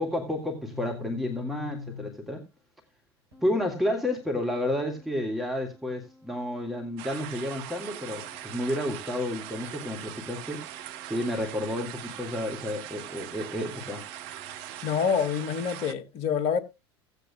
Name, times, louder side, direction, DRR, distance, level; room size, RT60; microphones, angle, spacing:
voice 1, 0.0-2.5 3.4-10.7 11.0-14.0, left 1 dB, ahead, 1.9 m, -31 dB
sound 1, 0.7-2.1 3.3-15.0, left 8 dB, 85° right, 4.2 m, -49 dB
sound 2, 7.0-15.9, right 12 dB, 60° right, 0.8 m, -41 dB
voice 2, 14.8-16.6, left 7 dB, 45° left, 1.4 m, -26 dB
17.0 x 8.1 x 2.2 m
figure-of-eight pair, 80°, 14 cm